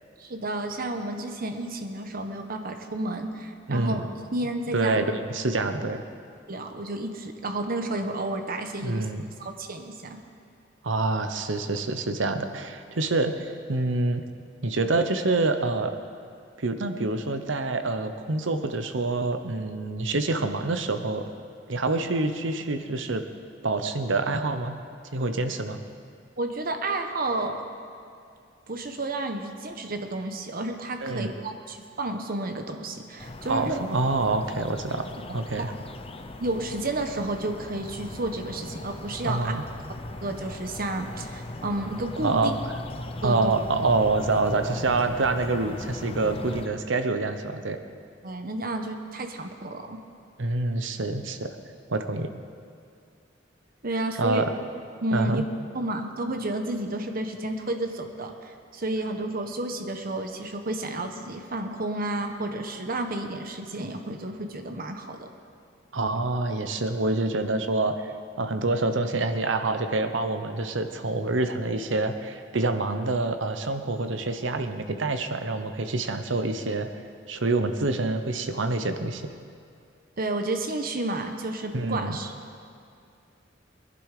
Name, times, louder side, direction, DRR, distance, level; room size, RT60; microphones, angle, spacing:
voice 1, 0.2-5.0 6.5-9.1 9.4-10.2 26.4-27.6 28.7-33.8 35.6-35.7 36.4-39.5 40.2-42.5 43.2-43.5 48.2-50.0 53.8-54.5 55.0-55.4 55.7-65.3 80.2-82.3, right 2 dB, 50° right, 5 dB, 1.2 m, -31 dB
voice 2, 3.7-4.1 4.7-6.0 8.8-9.2 10.8-14.2 14.6-16.0 16.6-21.2 21.7-23.2 23.6-24.8 25.1-25.8 31.0-31.3 33.5-35.1 35.3-35.7 39.2-39.6 42.2-42.7 43.0-47.8 50.4-51.6 51.9-52.3 54.2-54.5 55.1-55.4 65.9-68.1 68.4-76.9 77.3-79.2 81.7-82.2, right 3 dB, 80° right, 8 dB, 1.0 m, -26 dB
sound 1, 33.2-46.7, left 1 dB, 30° left, 0.8 m, -38 dB
20.5 x 11.0 x 5.0 m, 2.4 s
head